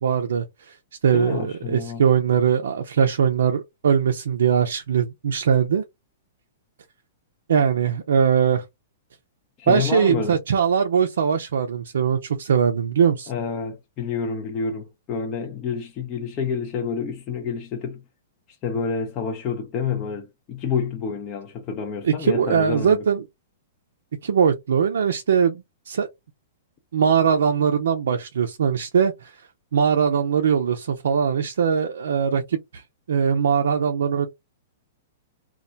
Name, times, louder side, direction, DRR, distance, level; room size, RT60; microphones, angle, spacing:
voice 1, 0.0-0.8 1.0-5.8 7.5-8.6 9.7-13.3 22.0-23.2 24.2-26.1 26.9-29.4 29.7-32.8 33.1-34.3, right 7 dB, 80° right, 0.4 m, -21 dB
voice 2, 1.1-2.0 9.6-10.4 13.3-18.0 18.6-23.0, left 6 dB, 30° left, 0.6 m, -28 dB
2.3 x 2.1 x 3.9 m
hypercardioid pair, 135°, 0 cm